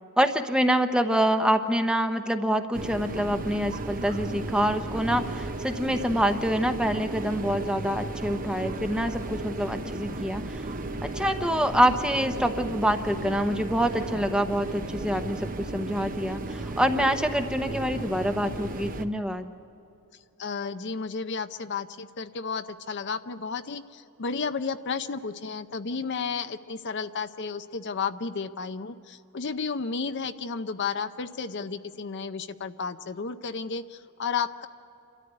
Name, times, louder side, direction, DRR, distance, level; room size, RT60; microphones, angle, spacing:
voice 1, 0.2-10.7 11.0-19.5, equal, 5° right, 7 dB, 0.9 m, -26 dB
sound 1, 2.7-19.0, right 2 dB, 40° right, 0.8 m, -35 dB
voice 2, 20.4-34.7, left 5 dB, 55° left, 10 dB, 0.6 m, -32 dB
28.0 x 13.5 x 9.8 m, 2.6 s
head